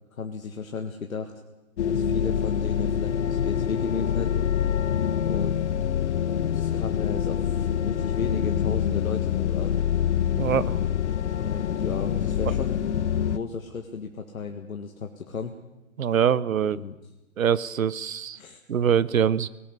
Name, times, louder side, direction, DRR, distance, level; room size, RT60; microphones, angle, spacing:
voice 1, 0.1-1.3 1.9-4.5 5.3-5.6 6.5-9.8 11.3-12.8 13.1-15.5 16.7-17.0 18.3-18.6, left 5 dB, 75° left, 4 dB, 1.9 m, -34 dB
sound 1, 1.8-13.4, left 9 dB, 55° left, 1.2 m, -26 dB
voice 2, 10.4-10.8 16.0-16.8 17.4-18.4 18.7-19.5, right 8 dB, 70° right, 19 dB, 1.0 m, -23 dB
18.5 x 18.0 x 8.1 m, 1.0 s
figure-of-eight pair, 130°, 42 cm